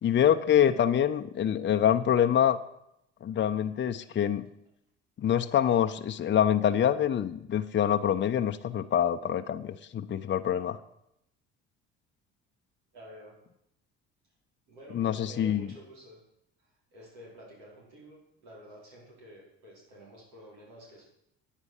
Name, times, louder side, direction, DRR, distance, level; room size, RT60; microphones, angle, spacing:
voice 1, 0.0-2.6 3.2-4.5 5.2-10.8 14.9-15.7, left 9 dB, 40° left, 9 dB, 0.8 m, -25 dB
voice 2, 12.9-13.4 14.7-16.2 16.9-21.0, equal, 80° right, -4 dB, 5.3 m, -50 dB
9.8 x 9.0 x 7.2 m, 0.78 s
supercardioid pair, 75°, 29 cm